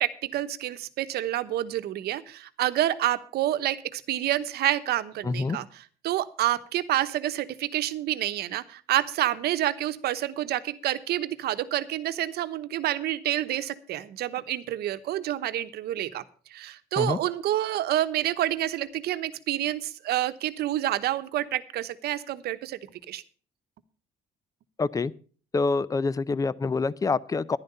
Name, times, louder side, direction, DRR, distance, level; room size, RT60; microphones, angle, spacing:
voice 1, 0.0-5.7 6.0-16.2 16.5-22.8 23.1-23.2, right 13 dB, 70° right, 12 dB, 1.0 m, -28 dB
voice 2, 5.2-5.6 17.0-17.2 24.8-25.1 25.5-27.6, left 4 dB, 20° left, 20 dB, 0.5 m, -26 dB
11.0 x 10.5 x 5.5 m, 0.40 s
cardioid pair, 110°, 17 cm